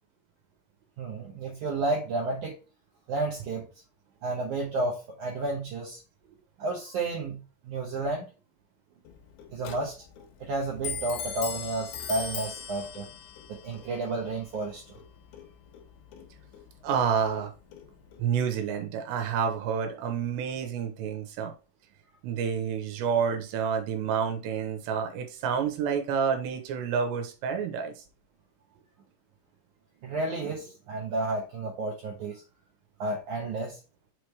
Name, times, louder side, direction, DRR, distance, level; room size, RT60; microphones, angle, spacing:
voice 1, 1.0-2.6 3.1-3.7 4.2-6.0 6.6-8.2 9.5-10.0 10.4-13.1 13.5-15.0 30.0-32.4 33.0-33.8, right 2 dB, 70° right, -2 dB, 1.9 m, -31 dB
Clock, 9.1-18.3, left 7 dB, 80° left, 3.0 m, -41 dB
voice 2, 16.8-17.5 18.2-21.5 22.2-27.9, right 7 dB, 90° right, 5 dB, 3.1 m, -29 dB
6.7 x 3.2 x 4.6 m, 0.32 s
omnidirectional pair, 5.0 m